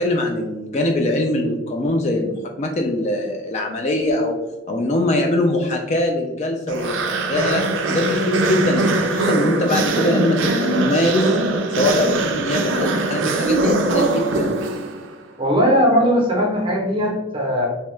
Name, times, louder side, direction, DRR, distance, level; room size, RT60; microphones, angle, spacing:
voice 1, 0.0-4.4 4.7-7.6 7.9-11.4 11.7-14.6, left 1 dB, 35° left, 3 dB, 0.3 m, -22 dB
sound 1, 6.7-15.1, right 3 dB, 65° right, 0.4 m, -22 dB
voice 2, 15.4-17.7, equal, 25° right, -1 dB, 0.7 m, -18 dB
2.8 x 2.3 x 3.1 m, 1.1 s
head